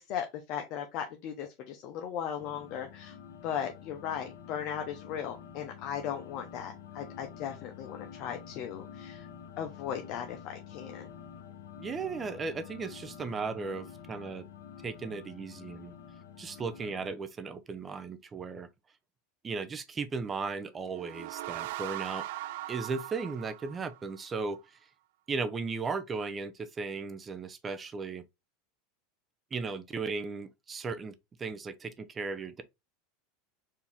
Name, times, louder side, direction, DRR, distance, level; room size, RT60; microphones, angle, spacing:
voice 1, 0.0-3.2 3.4-9.3 9.6-11.1, left 9 dB, 55° left, 0.8 m, -37 dB
sound 1, 2.4-17.1, left 8 dB, 75° left, 1.0 m, -48 dB
voice 2, 11.8-14.4 14.8-15.9 16.4-18.7 19.4-22.2 22.7-24.6 25.3-28.2 29.5-31.1 31.4-32.6, right 4 dB, 25° right, 0.7 m, -36 dB
sound 2, 20.8-24.3, right 15 dB, 70° right, 0.3 m, -40 dB
4.7 x 2.9 x 3.4 m
hypercardioid pair, 100°, 0 cm